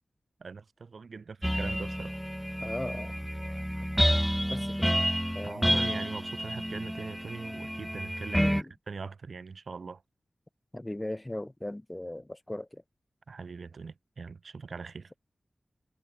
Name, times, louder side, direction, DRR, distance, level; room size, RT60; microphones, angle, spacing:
voice 1, 0.4-2.2 5.4-8.4 8.9-10.0 13.3-15.1, right 4 dB, 75° right, 3.1 m, -41 dB
sound 1, 1.4-8.6, equal, ahead, 2.0 m, -29 dB
voice 2, 2.6-3.1 4.5-4.9 5.3-5.8 8.3-8.7 10.7-12.8, left 1 dB, 15° left, 6.4 m, -38 dB
wide cardioid pair, 85°, 0 cm